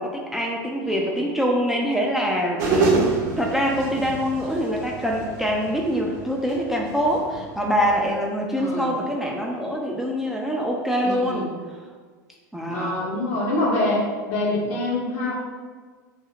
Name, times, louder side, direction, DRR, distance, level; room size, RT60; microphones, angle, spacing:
voice 1, 0.0-3.1 3.4-11.4 12.5-13.1, equal, 5° right, -1 dB, 0.3 m, -24 dB
sound 1, 2.6-8.1, right 2 dB, 70° right, 0.6 m, -28 dB
voice 2, 8.6-8.9 11.0-11.5 12.7-15.3, left 2 dB, 60° left, -3 dB, 0.9 m, -25 dB
2.7 x 2.4 x 2.8 m, 1.5 s
hypercardioid pair, 85°, 10 cm